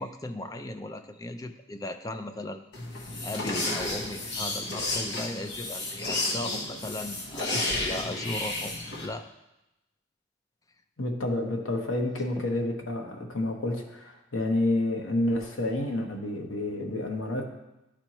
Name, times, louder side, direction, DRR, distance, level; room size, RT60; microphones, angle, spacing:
voice 1, 0.0-2.6 3.2-9.3 12.4-12.5, left 1 dB, 20° left, 8 dB, 0.3 m, -37 dB
sound 1, 2.7-9.1, left 2 dB, 60° left, 1.1 m, -32 dB
voice 2, 11.0-17.4, left 1 dB, 85° left, 2 dB, 1.1 m, -29 dB
11.5 x 4.4 x 3.0 m, 0.94 s
head